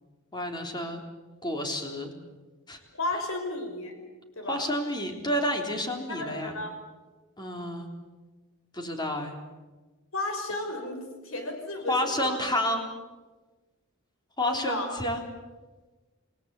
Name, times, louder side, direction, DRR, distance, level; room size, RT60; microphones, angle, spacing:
voice 1, 0.3-1.0 1.4-2.1 2.7-2.8 4.5-6.5 7.4-7.9 8.7-9.3 11.9-12.9 14.4-15.2, left 1 dB, 20° left, 3 dB, 3.7 m, -30 dB
voice 2, 2.9-3.9 4.4-4.6 6.1-6.7 10.1-12.4 14.4-14.9, left 2 dB, 80° left, 4 dB, 5.7 m, -33 dB
29.0 x 18.5 x 8.4 m, 1.3 s
head